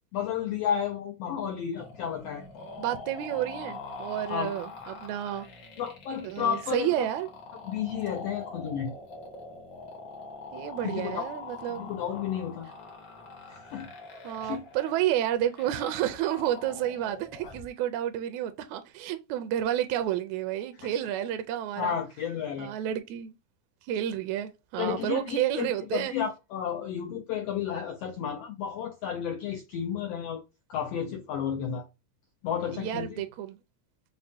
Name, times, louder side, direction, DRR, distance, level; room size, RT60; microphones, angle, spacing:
voice 1, 0.1-2.4 4.3-4.5 5.8-7.1 7.7-8.9 10.8-11.3 11.8-12.7 13.5-13.9 14.2-14.6 21.8-22.7 24.8-30.4 30.7-31.9 32.4-33.2, left 8 dB, 85° left, 1.4 m, -32 dB
sound 1, 1.7-17.7, left 3 dB, 60° left, 1.1 m, -44 dB
voice 2, 2.8-5.5 6.2-7.3 10.5-11.9 14.2-22.0 22.6-23.3 23.9-26.1 32.7-33.6, right 11 dB, 80° right, 1.7 m, -30 dB
5.4 x 2.2 x 2.5 m
omnidirectional pair, 3.6 m